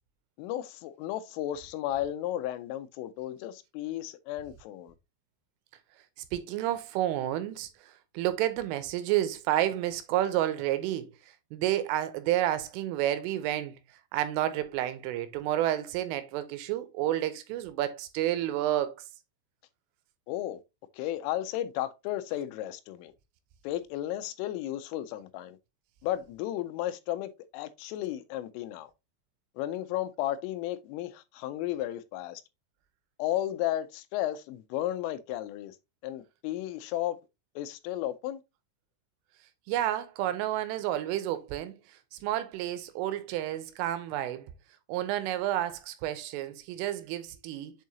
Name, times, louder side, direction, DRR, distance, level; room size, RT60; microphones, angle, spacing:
voice 1, 0.4-4.9 20.3-20.6 21.0-23.1 23.6-25.6 26.0-28.9 29.6-32.4 33.2-35.7 36.0-37.2 37.6-38.4, left 13 dB, 85° left, 3.2 m, -34 dB
voice 2, 6.3-7.7 8.1-11.1 11.5-13.8 14.1-19.0 39.7-41.7 42.1-44.5 44.9-47.7, right 13 dB, 85° right, 3.3 m, -30 dB
7.6 x 4.6 x 2.7 m
omnidirectional pair, 5.7 m